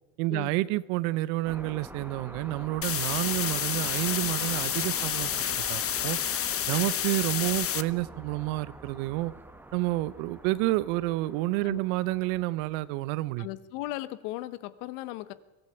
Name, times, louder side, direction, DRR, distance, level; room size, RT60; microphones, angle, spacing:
voice 1, 0.2-6.2 6.7-9.3 9.7-13.5, right 18 dB, 75° right, 18 dB, 1.1 m, -29 dB
sound 1, 1.4-13.3, right 1 dB, 5° right, 1.5 m, -46 dB
sound 2, 2.8-7.8, left 9 dB, 30° left, 1.1 m, -29 dB
voice 2, 13.4-15.3, left 16 dB, 75° left, 15 dB, 1.4 m, -37 dB
23.0 x 15.0 x 9.0 m, 1.1 s
supercardioid pair, 90°, 43 cm